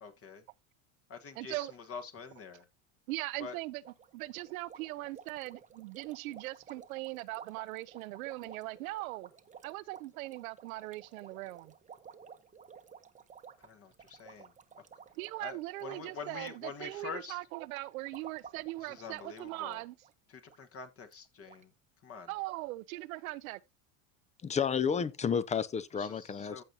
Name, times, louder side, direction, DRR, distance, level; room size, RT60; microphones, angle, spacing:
voice 1, 0.0-0.4 1.1-2.7 3.4-3.6 13.6-14.5 15.4-17.5 18.8-19.8 20.3-21.7 22.0-22.3 25.9-26.6, left 5 dB, 35° left, 1.4 m, -46 dB
voice 2, 1.4-1.7 3.1-3.8 4.1-9.3 9.6-11.7 15.2-19.9 22.3-23.6, right 19 dB, 90° right, 0.7 m, -40 dB
sound 1, 3.8-16.6 16.9-17.3 17.8-19.7 20.0-20.1 20.5-20.6 21.1-21.2 21.5-21.6, right 7 dB, 20° right, 0.9 m, -54 dB
voice 3, 24.4-26.6, left 7 dB, 15° left, 0.6 m, -31 dB
15.0 x 5.2 x 2.8 m
supercardioid pair, 125°, 41 cm